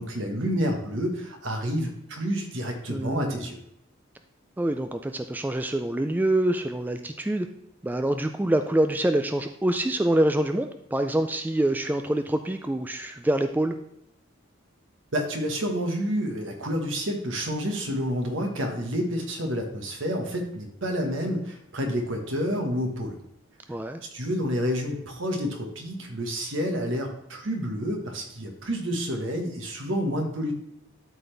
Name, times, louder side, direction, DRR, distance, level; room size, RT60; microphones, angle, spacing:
voice 1, 0.0-3.6 15.1-23.2 24.1-30.5, equal, 70° right, 3 dB, 1.5 m, -29 dB
voice 2, 2.9-3.5 4.6-7.5 7.8-13.7 23.7-24.0, right 1 dB, 10° right, 7 dB, 0.3 m, -25 dB
12.0 x 4.1 x 3.4 m, 0.77 s
head